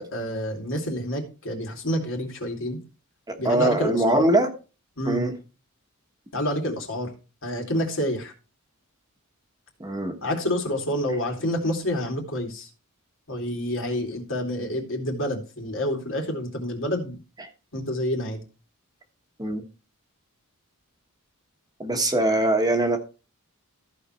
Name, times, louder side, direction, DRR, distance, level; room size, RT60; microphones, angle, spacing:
voice 1, 0.0-2.8 3.4-4.3 5.0-5.2 6.3-7.1 7.4-8.3 10.2-12.7 13.3-17.2 17.7-18.4, left 1 dB, 60° left, 2 dB, 2.7 m, -28 dB
voice 2, 3.3-4.5 5.0-5.3 9.8-10.1 19.4-19.6 21.8-23.0, right 1 dB, 15° right, 5 dB, 1.3 m, -22 dB
14.5 x 5.0 x 4.3 m, 0.32 s
head